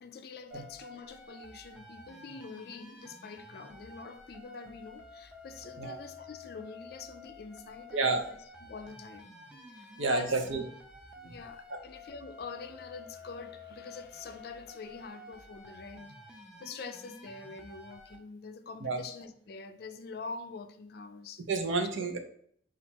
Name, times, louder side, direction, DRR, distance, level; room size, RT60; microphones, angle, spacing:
voice 1, 0.0-8.4 8.6-9.3 9.7-10.5 11.1-21.4 21.9-22.0, left 4 dB, 55° left, 0.4 m, -45 dB
sound 1, 0.5-18.2, left 2 dB, 5° right, 0.5 m, -51 dB
voice 2, 7.9-8.3 10.0-10.6 11.2-11.3 11.7-11.8 18.8-19.0 21.5-22.2, right 3 dB, 85° right, 0.7 m, -30 dB
4.1 x 2.4 x 4.3 m
head